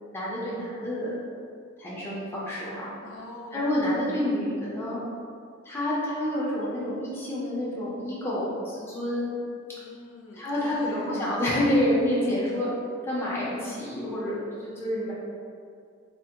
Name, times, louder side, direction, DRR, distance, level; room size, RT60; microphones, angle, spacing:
voice 1, 0.1-1.1 1.8-2.9 3.5-5.0 5.6-9.3 10.3-12.8 13.0-15.1, left 1 dB, 10° left, -8 dB, 0.6 m, -28 dB
voice 2, 3.0-3.7 9.7-11.1, left 1 dB, 85° left, -1 dB, 0.4 m, -43 dB
3.3 x 2.1 x 2.8 m, 2.2 s
head